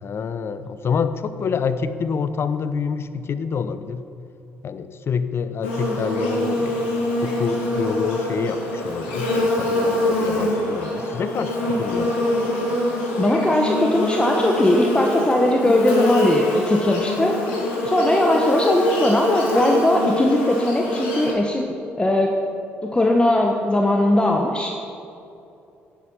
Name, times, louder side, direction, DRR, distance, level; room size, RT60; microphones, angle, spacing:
voice 1, 0.0-4.1 4.6-6.9 7.2-12.2, left 6 dB, 40° left, 12 dB, 0.8 m, -27 dB
Buzz, 5.6-21.3, left 1 dB, 75° left, 2.3 m, -24 dB
voice 2, 13.1-17.4 17.8-22.3 22.8-24.8, left 1 dB, 15° left, 1 dB, 1.5 m, -19 dB
16.0 x 11.0 x 5.7 m, 2.7 s
figure-of-eight pair, 45°, 6 cm